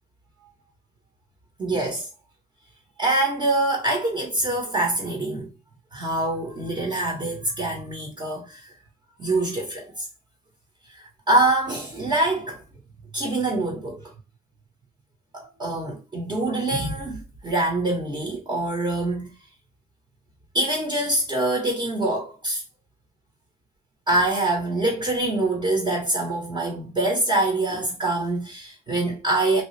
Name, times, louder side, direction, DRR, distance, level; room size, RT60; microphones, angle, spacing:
voice 1, 1.6-2.1 3.0-5.5 5.9-8.7 9.2-10.0 10.9-12.6 13.1-14.1 15.3-19.3 20.5-22.6 24.1-29.6, right 2 dB, 25° right, 1.1 m, -25 dB
2.8 x 2.3 x 3.2 m
cardioid pair, 110°, 17 cm